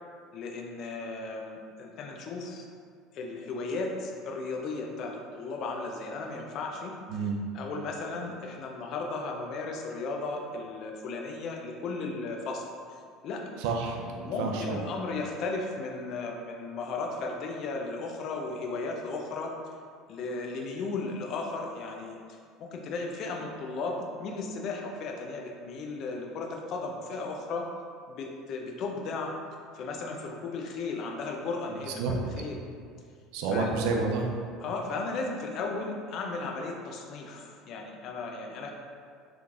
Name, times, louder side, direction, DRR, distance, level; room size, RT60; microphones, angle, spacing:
voice 1, 0.3-2.7 3.1-7.2 7.5-12.6 13.2-13.4 14.1-19.7 20.1-27.7 28.1-29.3 29.7-32.6 33.5-33.7 34.6-38.7, left 3 dB, 55° left, 1 dB, 0.5 m, -35 dB
voice 2, 7.1-7.4 13.6-14.0 14.4-14.8 32.0-32.1 33.3-34.3, right 4 dB, 70° right, 1 dB, 0.4 m, -29 dB
3.5 x 3.0 x 2.4 m, 2.2 s
hypercardioid pair, 80°, 0 cm